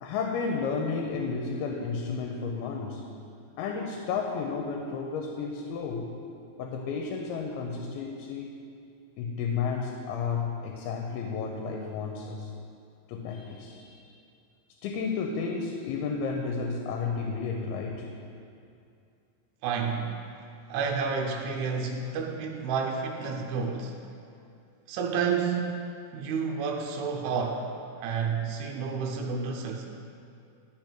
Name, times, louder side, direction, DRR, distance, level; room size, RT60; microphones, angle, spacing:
voice 1, 0.0-3.0 3.6-6.2 6.6-8.6 9.2-12.5 13.1-14.0 14.8-18.1, left 5 dB, 85° left, 1 dB, 2.6 m, -32 dB
voice 2, 19.6-20.2 20.7-24.0 24.9-25.7 26.1-27.7 28.0-29.9, right 5 dB, 85° right, 1 dB, 2.5 m, -30 dB
10.5 x 5.9 x 4.4 m, 2.5 s
omnidirectional pair, 4.5 m